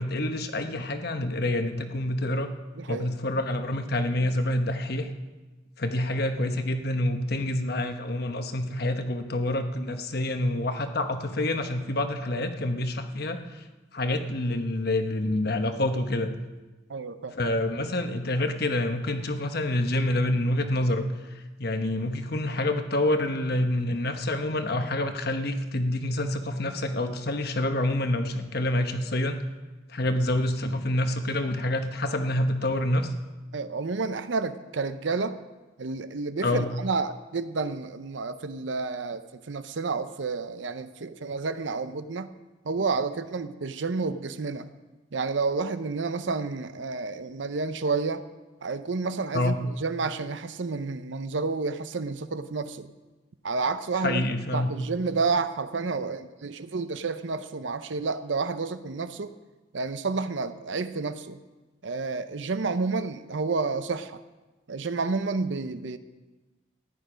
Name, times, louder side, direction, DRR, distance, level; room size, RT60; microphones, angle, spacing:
voice 1, 0.0-2.5 2.9-5.1 5.8-13.4 13.9-16.3 17.3-29.4 29.9-33.1 36.4-36.6 49.3-49.6 54.0-54.7, left 1 dB, 55° left, 7 dB, 1.0 m, -27 dB
voice 2, 2.8-3.1 16.9-17.3 33.5-35.4 35.8-39.2 39.5-42.3 42.6-44.7 45.1-48.2 48.6-52.9 53.4-54.2 54.5-59.3 59.7-61.4 61.8-64.2 64.7-66.0, right 4 dB, 70° right, 12 dB, 0.6 m, -30 dB
14.5 x 10.5 x 5.1 m, 1.2 s
head